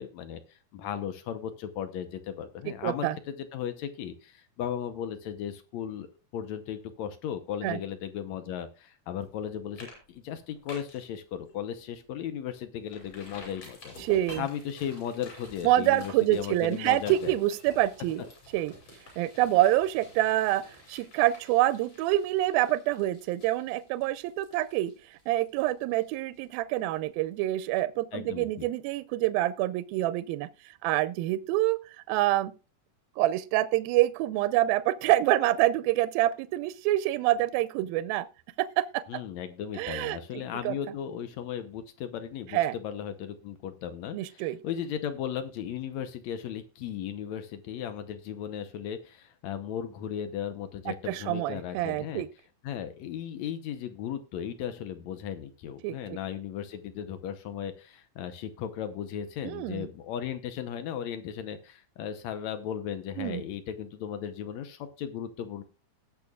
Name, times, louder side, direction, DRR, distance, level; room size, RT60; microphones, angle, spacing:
voice 1, 0.0-13.9 14.4-17.3 28.1-28.7 39.1-52.2 52.6-65.6, left 9 dB, 75° left, 1.6 m, -36 dB
voice 2, 2.8-3.2 7.6-7.8 14.0-14.4 15.6-18.2 18.5-18.7 19.2-20.6 20.9-30.5 30.8-31.8 32.1-32.5 33.2-38.3 38.6-39.2 39.8-40.8 42.5-42.7 44.1-44.6 50.9-52.3 55.8-56.2 59.4-59.9 63.2-63.4, right 15 dB, 80° right, 2.3 m, -26 dB
sound 1, 9.2-9.4 9.8-10.0 10.3-11.1 11.5-11.6 12.0-12.1 12.9-26.5 26.8-26.9, left 1 dB, 40° left, 6.8 m, -49 dB
19.0 x 6.8 x 2.4 m
omnidirectional pair, 4.4 m